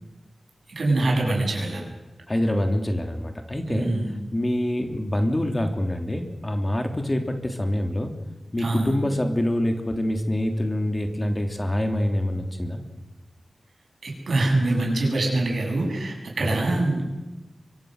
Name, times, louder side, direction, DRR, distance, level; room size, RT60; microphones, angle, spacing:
voice 1, 0.8-1.8 3.7-4.1 8.6-9.0 14.0-17.0, right 2 dB, 80° right, 0 dB, 7.5 m, -24 dB
voice 2, 2.3-4.0 4.3-8.1 8.5-12.8 16.4-16.6, left 1 dB, 25° left, 5 dB, 2.9 m, -25 dB
25.5 x 24.0 x 6.5 m, 1.1 s
wide cardioid pair, 90°, 0 cm